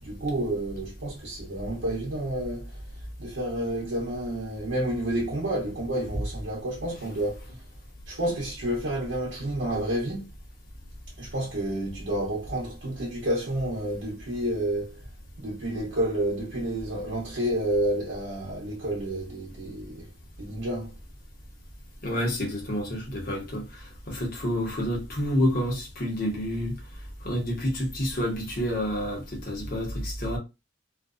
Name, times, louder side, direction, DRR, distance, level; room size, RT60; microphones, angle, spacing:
voice 1, 0.0-2.8 3.2-7.6 8.1-10.3 11.2-15.0 15.4-20.1 20.4-20.9, right 1 dB, 85° right, 0.8 m, -30 dB
voice 2, 22.0-26.7 27.2-30.4, equal, 50° left, 0.9 m, -29 dB
2.5 x 2.2 x 2.4 m
head